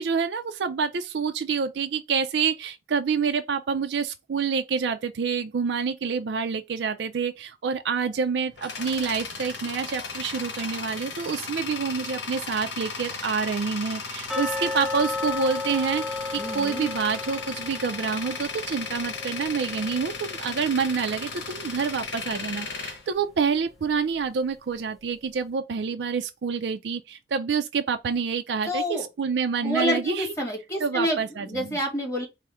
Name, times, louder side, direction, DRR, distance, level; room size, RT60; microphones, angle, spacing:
voice 1, 0.0-30.3 30.8-31.8, right 5 dB, 80° right, 0.4 m, -27 dB
Tools, 8.1-23.9, left 4 dB, 90° left, 0.9 m, -36 dB
sound 1, 14.3-21.2 21.4-21.5 22.0-22.1 22.7-22.8, left 3 dB, ahead, 0.5 m, -34 dB
voice 2, 16.4-16.9 28.7-29.1 29.6-32.3, equal, 15° left, 1.5 m, -28 dB
4.8 x 2.1 x 4.2 m
head